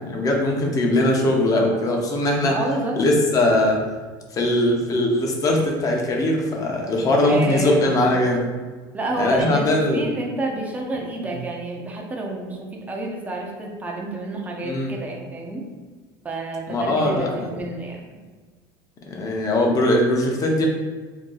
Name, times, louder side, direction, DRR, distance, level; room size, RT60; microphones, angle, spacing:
voice 1, 0.0-2.6 3.0-3.8 4.3-8.4 9.2-10.1 14.6-14.9 16.7-17.5 19.1-20.7, left 1 dB, 35° left, 0 dB, 0.7 m, -20 dB
voice 2, 2.4-3.0 7.2-8.2 8.9-15.7 16.2-18.0, right 2 dB, 15° right, 0 dB, 0.6 m, -29 dB
2.7 x 2.3 x 3.8 m, 1.4 s
supercardioid pair, 105°, 10 cm